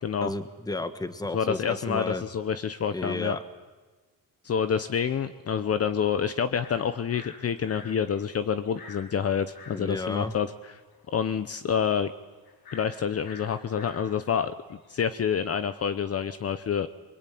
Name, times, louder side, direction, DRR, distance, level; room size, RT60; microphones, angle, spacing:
voice 1, 0.2-2.2 2.9-3.4 9.7-10.3, left 2 dB, 10° left, 10 dB, 1.5 m, -32 dB
voice 2, 1.3-3.4 4.4-10.7 11.1-12.1 12.7-16.9, left 7 dB, 40° left, 11 dB, 0.9 m, -28 dB
sound 1, 6.6-15.5, left 4 dB, 85° left, 5.6 m, -49 dB
28.0 x 22.5 x 9.4 m, 1.3 s
cardioid pair, 160°, 36 cm